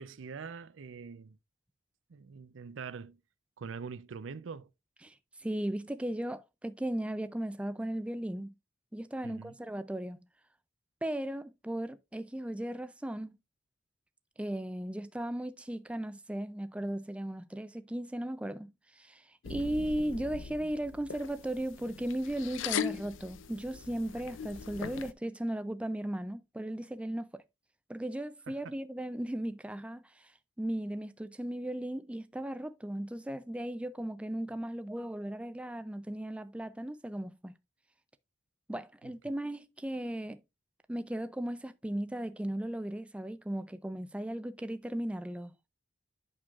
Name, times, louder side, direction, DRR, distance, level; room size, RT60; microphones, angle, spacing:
voice 1, 0.0-1.4 2.1-3.2 3.6-4.7 9.2-9.5 28.5-28.8 39.0-39.1, right 5 dB, 80° right, 0.5 m, -44 dB
voice 2, 5.0-8.5 8.9-10.2 11.0-13.4 14.4-27.4 27.9-37.5 38.7-40.4 40.9-45.5, right 1 dB, 5° right, 0.3 m, -36 dB
sound 1, 19.4-25.1, left 8 dB, 80° left, 0.5 m, -40 dB
8.6 x 6.2 x 2.4 m
head